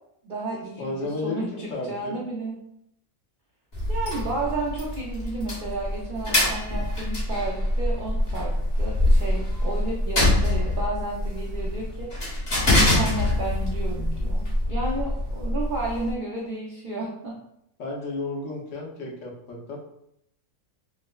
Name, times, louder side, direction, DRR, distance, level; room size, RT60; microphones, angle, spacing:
voice 1, 0.2-2.6 3.9-12.1 12.6-17.3, right 2 dB, 70° right, -4 dB, 0.4 m, -32 dB
voice 2, 0.8-2.2 17.8-19.8, left 2 dB, 60° left, -2 dB, 1.1 m, -32 dB
sound 1, 3.7-16.1, left 1 dB, 30° left, 1.1 m, -25 dB
4.9 x 2.0 x 2.2 m, 0.75 s
omnidirectional pair, 1.6 m